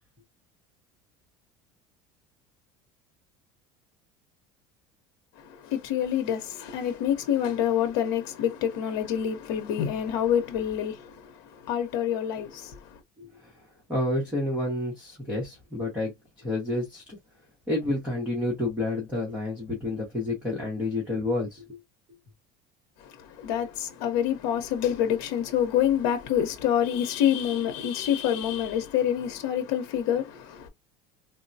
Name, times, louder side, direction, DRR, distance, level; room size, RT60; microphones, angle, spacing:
voice 1, 5.4-13.0 23.0-30.7, left 9 dB, 75° left, 0.9 m, -27 dB
voice 2, 13.2-17.2 17.7-21.8, left 2 dB, 10° right, 1.2 m, -30 dB
3.9 x 2.2 x 2.7 m
cardioid pair, 160°, 13 cm